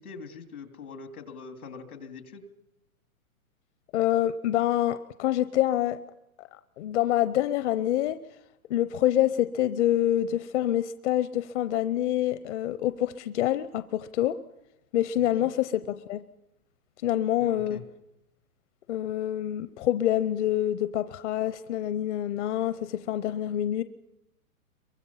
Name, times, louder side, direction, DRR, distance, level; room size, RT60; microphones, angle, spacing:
voice 1, 0.0-2.4 15.3-15.5 17.4-17.8, left 5 dB, 85° left, 6 dB, 3.2 m, -43 dB
voice 2, 3.9-6.0 6.4-6.5 6.8-8.2 8.7-14.4 14.9-16.2 17.0-17.8 18.9-23.8, left 12 dB, 55° left, 13 dB, 0.9 m, -26 dB
28.0 x 23.5 x 5.7 m, 0.90 s
hypercardioid pair, 130°, 43 cm